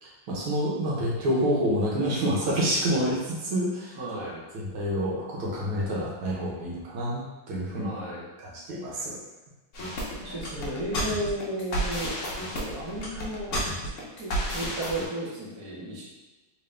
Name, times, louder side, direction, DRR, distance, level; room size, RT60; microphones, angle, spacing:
voice 1, 0.0-4.0 4.5-7.9 8.4-9.2, equal, 80° right, -4 dB, 1.8 m, -28 dB
voice 2, 4.0-4.4 7.7-8.2 10.2-12.2 12.5-13.6 14.2-16.0, right 1 dB, 35° right, -7 dB, 0.4 m, -34 dB
sound 1, 9.7-15.0, equal, 60° left, 0.7 m, -31 dB
3.9 x 2.6 x 3.3 m, 1.1 s
omnidirectional pair, 2.3 m